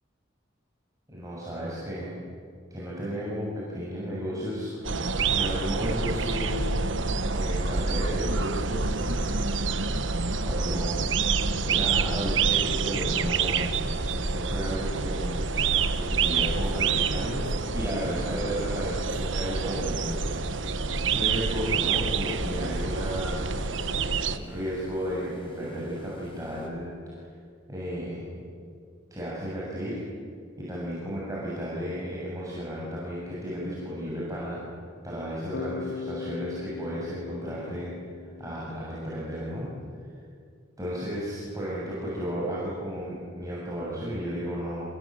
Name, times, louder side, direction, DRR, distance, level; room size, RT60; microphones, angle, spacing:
voice 1, 1.1-2.2 2.7-6.8 7.3-9.5 9.8-10.0 10.4-11.0 11.6-13.6 14.3-15.5 15.9-17.5 17.7-20.8 21.1-23.6 24.3-26.9 27.7-28.3 29.1-30.0 30.6-34.6 35.0-37.9 38.4-39.7 40.8-44.9, equal, 20° right, -7 dB, 7.1 m, -33 dB
sound 1, 4.8-24.4, right 4 dB, 70° right, 1.3 m, -27 dB
sound 2, 8.8-26.7, equal, 30° left, 4.9 m, -48 dB
Bass guitar, 35.5-39.5, left 5 dB, 70° left, 0.7 m, -39 dB
29.0 x 22.0 x 9.2 m, 2.2 s
head